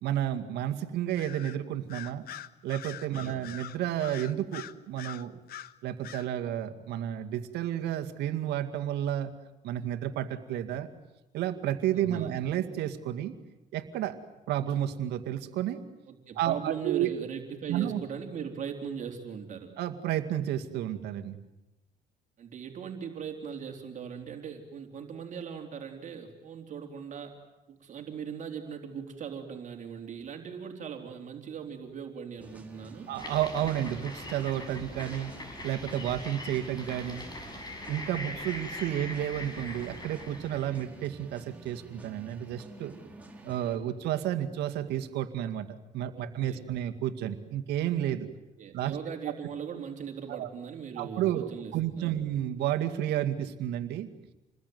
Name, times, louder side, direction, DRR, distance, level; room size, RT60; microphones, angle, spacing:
voice 1, 0.0-2.2 2.6-5.4 5.8-9.3 9.6-10.9 11.3-13.3 13.7-14.2 14.5-15.8 16.4-17.1 17.7-18.0 19.8-21.4 33.1-35.4 35.6-37.3 37.9-42.9 43.4-48.3 48.7-49.0 49.3-49.4 50.3-50.5 51.0-54.1, right 11 dB, 80° right, 7 dB, 2.1 m, -31 dB
Bird vocalization bird call bird song, 1.2-1.6 1.9-5.7 6.0-6.3, left 11 dB, 65° left, 1.1 m, -43 dB
voice 2, 3.2-3.5 11.9-12.3 16.1-19.7 22.4-27.3 27.7-33.1 46.1-46.6 48.6-52.2, right 7 dB, 45° right, 3 dB, 3.7 m, -39 dB
sound 1, 32.4-43.8, right 2 dB, 10° right, 4.3 m, -49 dB
sound 2, 33.2-40.8, left 1 dB, 25° left, 7.0 m, -42 dB
28.5 x 21.0 x 9.5 m, 1.0 s
cardioid pair, 110°, 17 cm